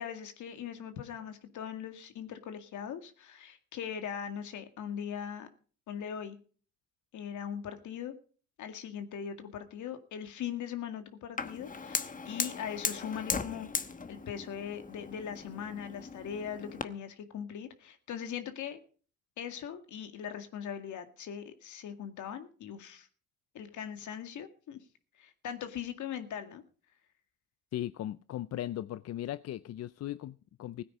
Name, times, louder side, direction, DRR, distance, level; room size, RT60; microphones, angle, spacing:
voice 1, 0.0-5.5 5.9-6.4 7.1-8.2 8.6-18.8 19.4-23.1 23.5-24.8 25.2-26.6, left 8 dB, 75° left, 8 dB, 2.1 m, -40 dB
Fire, 11.4-16.8, left 5 dB, 25° left, 1.0 m, -37 dB
voice 2, 27.7-30.8, left 12 dB, 55° left, 16 dB, 0.5 m, -38 dB
16.5 x 9.4 x 5.5 m, 0.42 s
cardioid pair, 90°, 30 cm